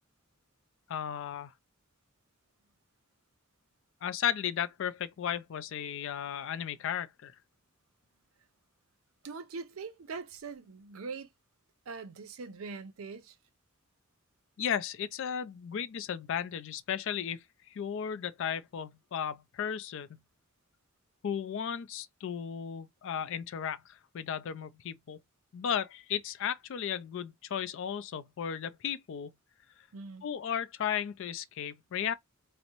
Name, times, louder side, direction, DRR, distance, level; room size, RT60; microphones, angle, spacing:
voice 1, 0.9-1.5 4.0-7.4 14.6-20.2 21.2-25.2 25.5-29.3 30.2-32.1, left 8 dB, 60° left, 0.3 m, -35 dB
voice 2, 9.2-11.3 11.9-13.3 29.9-30.3, right 4 dB, 70° right, 0.5 m, -42 dB
2.5 x 2.0 x 2.8 m
head